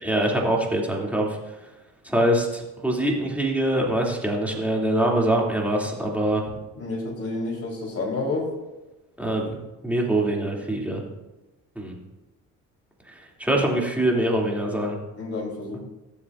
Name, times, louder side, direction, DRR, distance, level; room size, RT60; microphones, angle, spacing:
voice 1, 0.0-1.4 2.0-6.4 9.2-9.6 9.8-11.0 11.7-12.0 13.1-15.0, right 1 dB, 5° right, -2 dB, 2.7 m, -24 dB
voice 2, 6.8-8.5 13.6-13.8 15.2-15.8, left 2 dB, 35° left, -1 dB, 3.8 m, -29 dB
15.0 x 7.7 x 2.6 m, 1.0 s
supercardioid pair, 70°, 39 cm